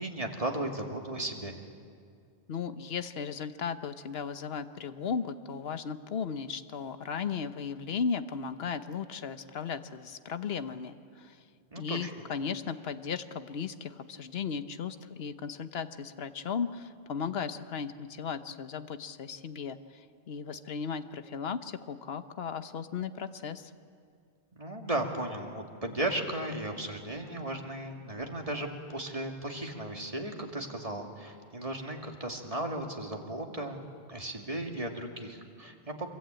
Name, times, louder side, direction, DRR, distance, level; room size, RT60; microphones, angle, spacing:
voice 1, 0.0-1.5 11.7-12.1 24.6-36.1, right 1 dB, 30° right, 2 dB, 2.4 m, -35 dB
voice 2, 2.5-11.4 11.8-19.8 20.3-23.7, left 6 dB, 65° left, 10 dB, 1.2 m, -36 dB
24.5 x 22.5 x 8.9 m, 2.3 s
omnidirectional pair, 1.1 m